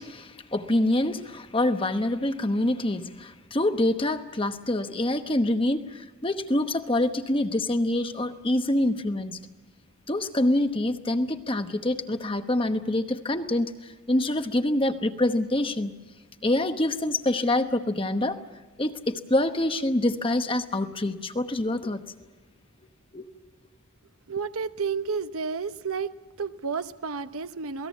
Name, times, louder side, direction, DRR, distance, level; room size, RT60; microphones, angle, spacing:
voice 1, 0.0-9.4 10.1-15.9 16.4-18.4 18.8-22.0 23.1-23.3, left 1 dB, 25° left, 1.0 m, -26 dB
voice 2, 24.3-26.1 26.4-27.9, right 5 dB, 75° right, 0.9 m, -31 dB
28.0 x 19.0 x 7.3 m
head